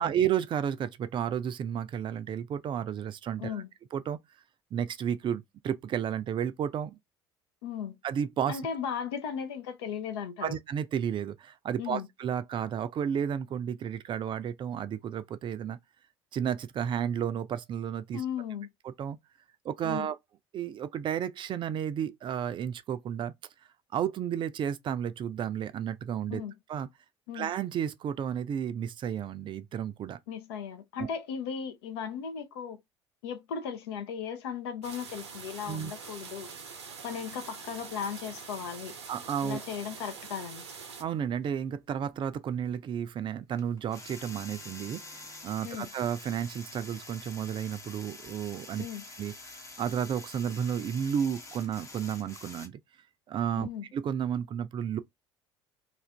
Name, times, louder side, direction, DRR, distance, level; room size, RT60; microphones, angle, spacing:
voice 1, 0.0-3.5 3.9-4.2 4.7-7.0 8.0-8.6 10.4-15.8 16.3-18.2 18.8-19.2 19.6-20.2 20.5-23.3 23.9-26.4 26.7-26.9 27.3-30.2 31.0-31.1 35.7-35.9 39.1-39.6 41.0-48.9 49.2-49.3 49.8-52.8 53.3-55.0, right 8 dB, 35° right, 0.4 m, -32 dB
voice 2, 3.4-3.7 7.6-8.0 8.5-10.6 11.8-12.1 18.1-18.7 19.8-20.1 26.3-26.6 27.3-27.5 30.3-32.8 33.2-36.5 37.0-38.9 39.4-40.6 45.6-45.9 48.8-49.1 53.6-53.9, left 7 dB, 70° left, 0.6 m, -36 dB
sound 1, 34.8-41.0, right 5 dB, 80° right, 0.6 m, -44 dB
sound 2, 41.4-41.5 43.6-52.7, left 2 dB, 20° left, 0.7 m, -47 dB
2.4 x 2.4 x 3.2 m
figure-of-eight pair, 60°, 14 cm